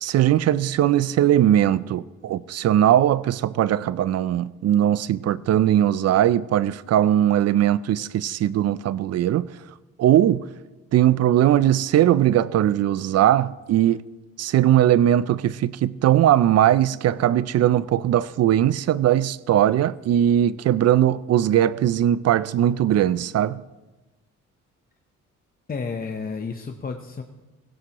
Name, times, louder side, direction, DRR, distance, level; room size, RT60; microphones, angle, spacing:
voice 1, 0.0-9.5 10.0-10.4 10.9-14.0 14.4-23.6, right 11 dB, 55° right, 0.4 m, -19 dB
voice 2, 25.7-27.2, left 5 dB, 30° left, 0.9 m, -31 dB
17.0 x 16.0 x 3.0 m
cardioid pair, 90°, 30 cm